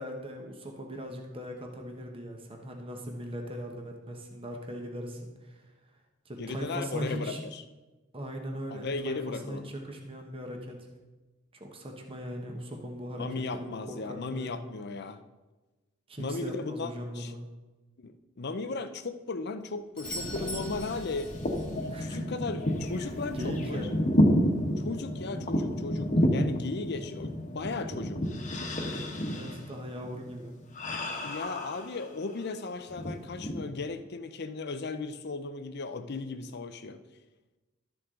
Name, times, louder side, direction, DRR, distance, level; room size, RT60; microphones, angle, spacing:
voice 1, 0.0-5.5 6.3-7.4 8.1-10.9 11.5-14.6 16.1-17.4 21.9-22.3 23.3-24.0 29.3-30.6, equal, 25° right, 2 dB, 1.1 m, -39 dB
voice 2, 6.4-7.6 8.7-9.7 13.1-15.2 16.2-17.4 18.0-21.3 21.8-23.9 24.8-28.2 31.2-37.0, left 3 dB, 55° left, 10 dB, 0.6 m, -36 dB
sound 1, 20.0-32.5 32.9-33.7, equal, 40° left, 1.2 m, -30 dB
Doorbell, 20.0-21.8 25.9-26.0, equal, 5° left, 1.2 m, -42 dB
12.5 x 7.0 x 3.8 m, 1.2 s
head